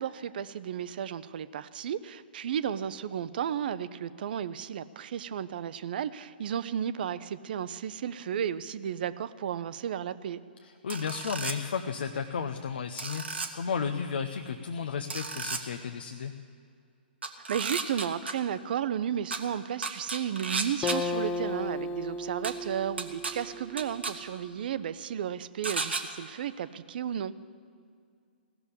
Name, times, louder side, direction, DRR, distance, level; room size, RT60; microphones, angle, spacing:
voice 1, 0.0-10.4 17.5-27.3, right 9 dB, 60° right, 15 dB, 0.5 m, -33 dB
voice 2, 10.6-16.3, left 6 dB, 70° left, 6 dB, 0.7 m, -33 dB
sound 1, 10.9-11.5 13.0-13.5 15.1-15.6 17.2-18.3 19.3-19.4 19.8-21.0 22.4-22.5 23.0-23.3 23.8-24.1 25.6-26.0, right 4 dB, 85° right, 1.2 m, -33 dB
Acoustic guitar, 20.8-24.4, left 2 dB, 20° left, 0.6 m, -35 dB
16.5 x 6.9 x 9.6 m, 2.3 s
hypercardioid pair, 125°, 6 cm